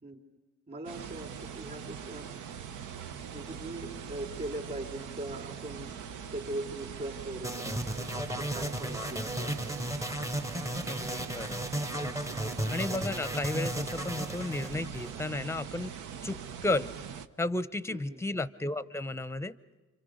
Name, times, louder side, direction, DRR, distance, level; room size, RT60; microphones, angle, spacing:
voice 1, 0.7-2.4 3.3-5.9 6.3-9.6 12.3-12.6 17.9-18.2, right 1 dB, 35° right, 2 dB, 4.0 m, -41 dB
sound 1, 0.9-17.3, right 8 dB, 80° right, 0.9 m, -42 dB
sound 2, 7.4-15.5, equal, 10° right, 0.9 m, -35 dB
voice 2, 10.9-11.6 12.7-15.9 16.2-16.9 17.4-19.6, left 2 dB, 10° left, 15 dB, 0.7 m, -33 dB
29.0 x 25.5 x 5.1 m, 1.3 s
cardioid pair, 90°, 30 cm